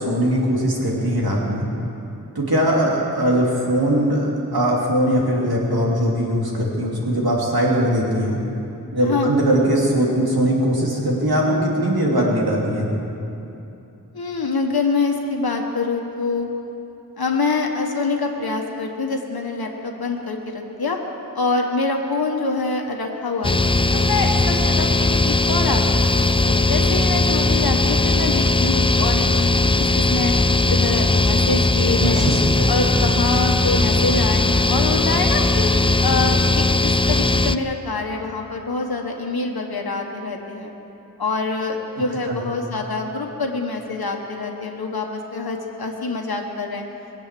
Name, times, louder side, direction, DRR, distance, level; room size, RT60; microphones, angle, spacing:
voice 1, 0.0-1.7 2.3-8.4 8.9-13.0 32.0-32.2 32.6-32.7 42.3-42.4, equal, 85° right, -3 dB, 3.0 m, -20 dB
voice 2, 9.0-9.3 14.1-16.5 17.2-21.0 21.3-23.5 23.9-30.3 30.6-32.3 32.7-35.7 36.0-40.7 41.2-46.8, left 3 dB, 85° left, 1 dB, 1.3 m, -25 dB
sound 1, 23.4-37.6, left 2 dB, 15° left, 0.4 m, -18 dB
22.0 x 8.2 x 7.6 m, 2.9 s
wide cardioid pair, 55°, 36 cm